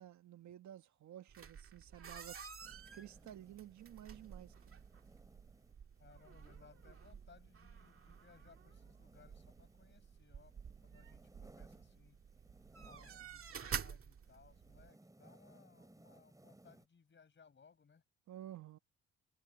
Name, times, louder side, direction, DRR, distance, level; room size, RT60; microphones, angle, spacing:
voice 1, 0.0-2.4 2.9-4.5 18.3-18.8, right 12 dB, 70° right, 1.4 m, -52 dB
sound 1, 1.3-14.9, right 7 dB, 45° right, 2.1 m, -50 dB
sound 2, 2.6-13.7 14.0-16.9, right 1 dB, 10° right, 5.3 m, -65 dB
voice 2, 6.0-12.2 12.9-18.0, left 6 dB, 40° left, 5.3 m, -65 dB
cardioid pair, 90°, 30 cm